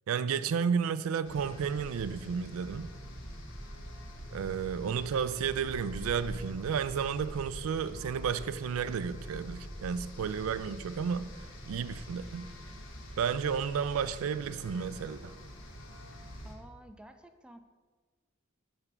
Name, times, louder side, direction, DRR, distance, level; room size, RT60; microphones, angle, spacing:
voice 1, 0.1-2.9 4.3-11.3 11.7-12.5 13.2-15.3, right 7 dB, 85° right, 0.3 m, -32 dB
sound 1, 1.2-16.5, equal, 70° left, 1.3 m, -45 dB
voice 2, 16.4-17.6, right 1 dB, 5° right, 0.4 m, -51 dB
9.6 x 3.4 x 5.9 m
head